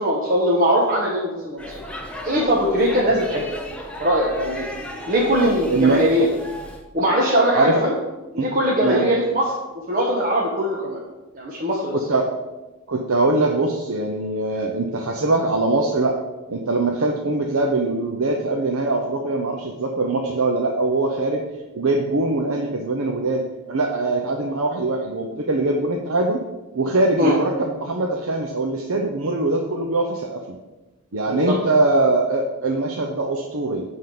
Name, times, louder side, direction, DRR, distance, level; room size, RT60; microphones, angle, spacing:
voice 1, 0.0-1.8 2.2-3.5 4.0-4.6 5.1-6.3 6.9-7.9 8.3-9.5 9.9-11.0 11.3-12.0 27.2-27.4 31.3-31.5, equal, 40° right, -4 dB, 1.1 m, -20 dB
Speech / Shout / Subway metro underground, 1.6-6.8, left 1 dB, 5° left, 0.8 m, -35 dB
voice 2, 5.7-6.0 7.5-7.8 8.3-8.5 8.8-9.0 11.9-12.3 12.9-16.2 16.5-21.4 21.7-23.4 23.7-26.4 26.7-30.4 31.1-33.8, right 2 dB, 75° right, 1 dB, 0.8 m, -22 dB
9.4 x 3.8 x 6.8 m, 1.1 s
head